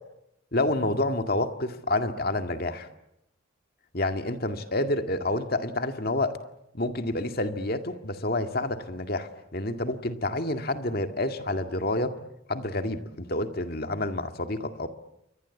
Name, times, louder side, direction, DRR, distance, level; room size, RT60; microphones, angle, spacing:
voice 1, 0.5-2.9 3.9-6.4 6.7-12.2 12.5-14.9, left 2 dB, 45° left, 7 dB, 2.0 m, -28 dB
29.0 x 23.5 x 8.3 m, 0.83 s
head